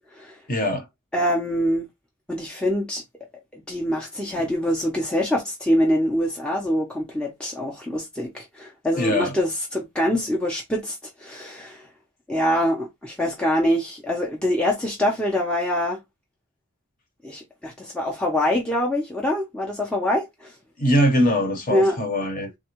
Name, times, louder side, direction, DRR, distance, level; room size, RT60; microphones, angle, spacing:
voice 1, 0.5-0.9 9.0-9.3 20.8-22.5, equal, 40° left, 0.9 m, -22 dB
voice 2, 1.1-1.9 2.3-3.0 3.5-11.9 12.3-16.0 17.2-20.5 21.7-22.0, equal, 5° left, 0.5 m, -24 dB
3.4 x 2.2 x 2.9 m
head